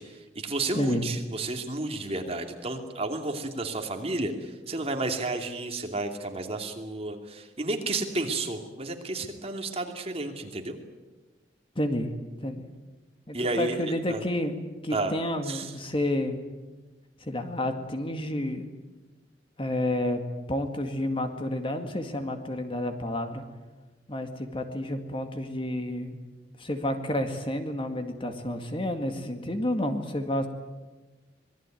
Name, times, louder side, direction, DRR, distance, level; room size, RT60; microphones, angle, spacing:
voice 1, 0.0-10.8 13.3-14.2 14.9-15.1 15.4-15.7, right 2 dB, 35° right, 4 dB, 2.8 m, -32 dB
voice 2, 11.8-12.1 12.4-12.7 13.3-16.4 17.2-18.7 19.6-20.2 20.5-23.4 24.1-26.2 26.6-30.5, left 1 dB, 30° left, 6 dB, 2.1 m, -30 dB
26.0 x 20.5 x 9.3 m, 1.2 s
head